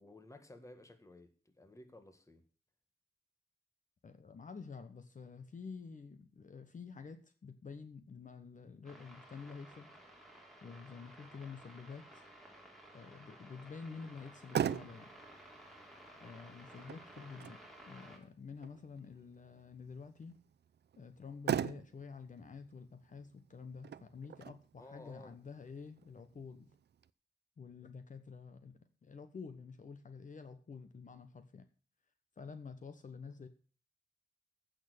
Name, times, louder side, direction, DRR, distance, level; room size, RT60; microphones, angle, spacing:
voice 1, 0.0-2.4 16.8-17.0 24.8-25.4, left 2 dB, 20° left, 8 dB, 1.6 m, -55 dB
voice 2, 4.0-9.9 10.6-12.2 12.9-15.1 16.2-17.6 17.9-20.4 21.0-26.7 27.6-31.6 32.4-33.5, left 5 dB, 50° left, 9 dB, 1.2 m, -49 dB
sound 1, 8.8-18.2, right 1 dB, ahead, 3.2 m, -56 dB
Motor vehicle (road), 14.2-27.1, right 9 dB, 85° right, 0.6 m, -43 dB
15.5 x 6.5 x 6.6 m, 0.38 s
wide cardioid pair, 170°, 17 cm